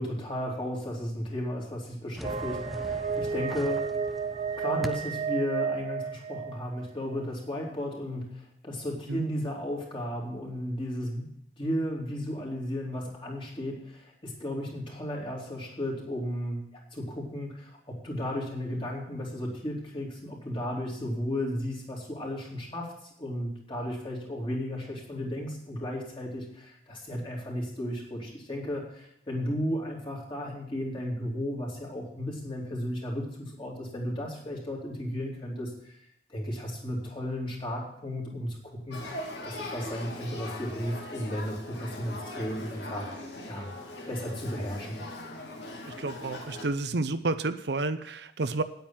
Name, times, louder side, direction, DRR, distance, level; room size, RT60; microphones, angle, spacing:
voice 1, 0.0-4.0 4.6-11.3 11.6-43.1 43.4-43.7 44.1-45.0, equal, 30° left, -3 dB, 3.1 m, -34 dB
sound 1, 2.1-5.4, equal, ahead, 0.3 m, -41 dB
sound 2, 2.2-6.9, right 6 dB, 35° right, 0.7 m, -32 dB
Male speech man speaking / Child speech kid speaking / Conversation, 38.9-46.7, left 1 dB, 75° left, 2.2 m, -40 dB
voice 2, 45.9-48.6, right 3 dB, 70° right, 10 dB, 0.7 m, -30 dB
9.5 x 8.9 x 7.3 m, 0.76 s
head